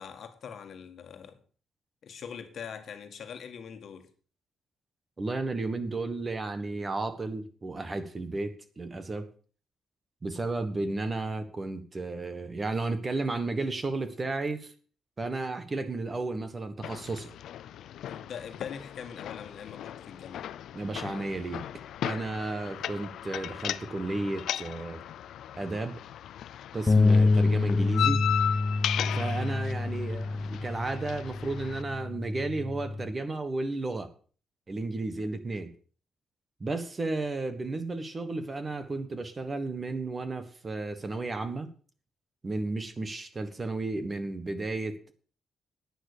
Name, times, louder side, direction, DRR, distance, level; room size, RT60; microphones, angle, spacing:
voice 1, 0.0-1.4 2.0-4.1 18.1-20.5, left 7 dB, 55° left, 1.7 m, -42 dB
voice 2, 5.2-9.3 10.2-14.7 15.2-17.3 20.7-21.6 22.0-25.0 25.5-26.0 26.7-28.2 29.1-34.1 34.7-35.7 36.6-41.7 42.4-45.1, right 2 dB, 25° right, 1.4 m, -33 dB
sound 1, 16.8-31.8, left 10 dB, 90° left, 0.5 m, -36 dB
sound 2, 26.9-33.1, left 3 dB, 15° left, 0.9 m, -26 dB
11.0 x 9.6 x 6.7 m
wide cardioid pair, 160°, 0 cm